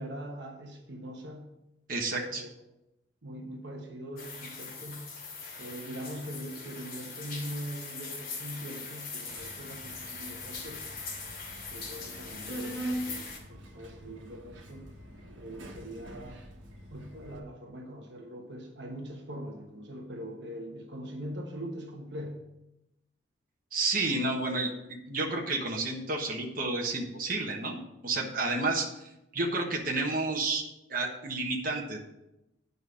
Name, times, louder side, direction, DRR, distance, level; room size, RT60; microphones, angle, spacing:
voice 1, 0.0-1.5 2.3-2.5 3.2-5.1 5.6-10.8 11.7-12.8 13.5-14.9 15.4-16.4 16.9-22.4, equal, 65° right, 2 dB, 1.2 m, -42 dB
voice 2, 1.9-2.4 23.7-24.7 25.1-30.6 30.9-32.0, right 3 dB, 45° right, 0 dB, 1.3 m, -31 dB
sound 1, 4.2-13.4, left 4 dB, 50° left, 2.6 m, -41 dB
Subway metro underground, 9.3-17.4, right 1 dB, 80° right, 1.5 m, -43 dB
9.1 x 5.4 x 6.3 m, 0.92 s
head